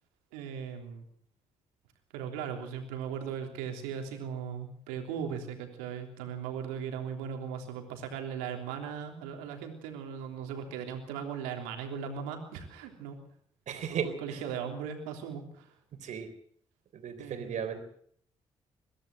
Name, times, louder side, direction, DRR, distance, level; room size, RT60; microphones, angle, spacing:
voice 1, 0.3-1.0 2.1-13.2 13.9-15.7 17.2-17.6, right 7 dB, 85° right, 4 dB, 3.3 m, -38 dB
voice 2, 13.7-14.4 16.0-16.3 16.9-17.8, right 7 dB, 65° right, 9 dB, 3.8 m, -35 dB
22.5 x 15.5 x 7.9 m, 0.62 s
hypercardioid pair, 45°, 13 cm